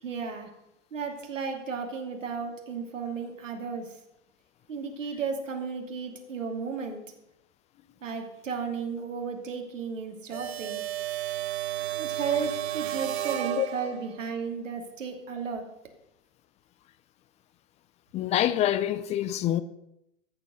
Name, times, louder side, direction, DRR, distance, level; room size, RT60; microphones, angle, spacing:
voice 1, 0.0-0.5 0.9-4.0 4.7-7.0 8.0-10.8 11.9-15.7, right 5 dB, 75° right, 2.8 m, -34 dB
sound 1, 10.3-14.2, right 13 dB, 55° right, 0.9 m, -32 dB
voice 2, 18.1-19.6, left 12 dB, 20° left, 0.4 m, -26 dB
13.5 x 7.6 x 6.3 m
figure-of-eight pair, 105°, 38 cm